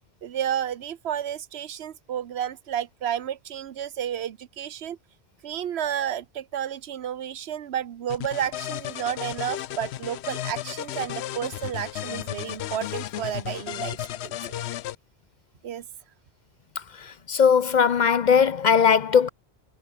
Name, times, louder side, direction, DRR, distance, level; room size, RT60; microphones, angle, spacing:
voice 1, 0.2-5.0 5.4-14.4 15.6-15.8, right 10 dB, 80° right, 1.0 m, -31 dB
sound 1, 8.1-14.9, left 12 dB, 85° left, 0.9 m, -34 dB
voice 2, 17.0-19.3, left 6 dB, 55° left, 0.6 m, -19 dB
omnidirectional pair, 1.1 m